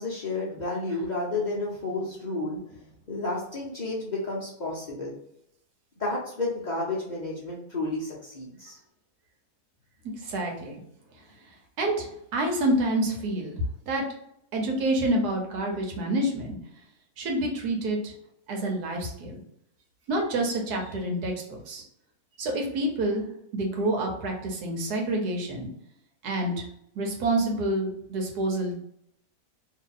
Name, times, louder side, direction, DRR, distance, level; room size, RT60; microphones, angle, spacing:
voice 1, 0.0-2.6 3.1-5.1 6.0-8.8, left 2 dB, 50° left, -4 dB, 0.5 m, -31 dB
voice 2, 10.2-10.8 11.8-13.6 13.9-14.0 14.5-16.6 17.2-18.1 18.5-19.4 20.1-21.8 22.4-23.2 23.5-25.7 26.2-26.5 26.9-28.8, right 1 dB, 85° right, 1 dB, 1.4 m, -28 dB
2.8 x 2.7 x 3.8 m, 0.75 s
omnidirectional pair, 1.6 m